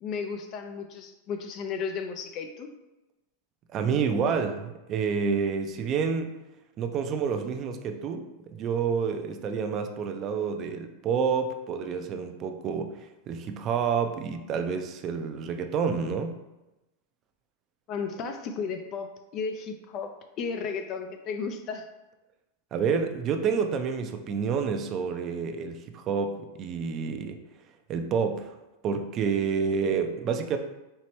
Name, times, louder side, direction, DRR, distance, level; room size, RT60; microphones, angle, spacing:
voice 1, 0.0-2.7 17.9-21.9, left 5 dB, 40° left, 6 dB, 0.4 m, -34 dB
voice 2, 3.7-6.3 6.8-12.9 13.3-16.4 22.7-27.4 27.9-28.5 28.8-30.6, right 6 dB, 35° right, 6 dB, 0.4 m, -28 dB
4.5 x 3.0 x 3.0 m, 1.0 s
hypercardioid pair, 125°, 0 cm